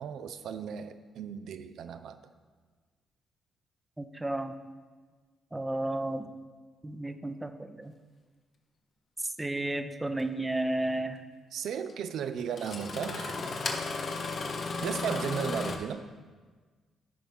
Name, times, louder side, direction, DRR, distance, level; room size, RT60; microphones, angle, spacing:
voice 1, 0.0-2.2 11.5-13.4 14.8-16.0, right 7 dB, 70° right, 10 dB, 0.4 m, -35 dB
voice 2, 4.0-4.5 5.5-6.2 6.8-7.9 9.4-11.2, right 1 dB, 15° right, 8 dB, 0.7 m, -32 dB
Engine starting, 10.2-10.3 11.9-12.0 12.5-15.8, left 3 dB, 55° left, 0.9 m, -34 dB
14.0 x 5.0 x 3.5 m, 1.4 s
hypercardioid pair, 45°, 0 cm